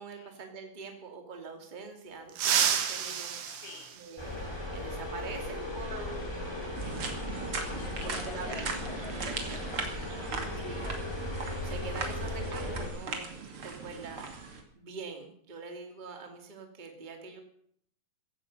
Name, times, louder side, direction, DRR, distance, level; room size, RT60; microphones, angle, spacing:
voice 1, 0.0-3.4 3.9-7.0 8.0-8.8 9.1-9.2 10.6-10.9 11.6-13.4 13.6-14.3 14.7-17.4, right 4 dB, 15° right, 4 dB, 1.9 m, -44 dB
sound 1, 2.3-4.7 6.4-6.5 7.7-7.8 9.4-9.6 9.9-10.1 10.6-12.8 13.1-13.3 13.7-14.2, right 8 dB, 65° right, 3.1 m, -32 dB
voice 2, 3.5-3.9 7.7-11.1, left 4 dB, 70° left, 2 dB, 5.3 m, -48 dB
sound 2, 4.2-12.9, left 1 dB, 5° left, 3.8 m, -37 dB
sound 3, 6.7-14.6, right 4 dB, 40° right, 2.5 m, -39 dB
16.5 x 15.0 x 5.6 m, 0.64 s
omnidirectional pair, 4.6 m